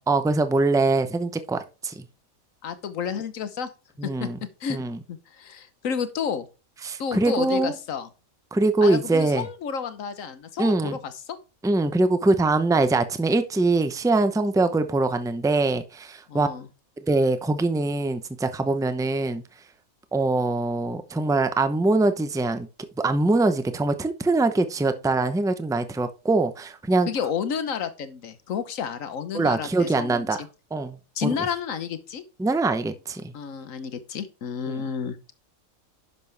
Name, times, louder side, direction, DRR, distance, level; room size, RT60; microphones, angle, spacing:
voice 1, 0.1-2.0 4.0-4.4 4.7-5.0 6.8-7.7 8.5-9.5 10.6-11.0 11.6-16.5 17.1-19.4 20.1-22.7 23.0-27.1 29.3-30.4 30.7-31.3 32.4-33.3 34.7-34.8, right 2 dB, 5° right, 0.4 m, -23 dB
voice 2, 2.6-3.7 4.0-4.3 4.6-4.8 5.1-6.5 7.0-8.1 8.8-11.4 16.3-16.7 27.1-30.5 31.1-32.2 33.3-35.3, left 7 dB, 65° left, 1.4 m, -31 dB
10.5 x 6.8 x 3.4 m
omnidirectional pair, 1.5 m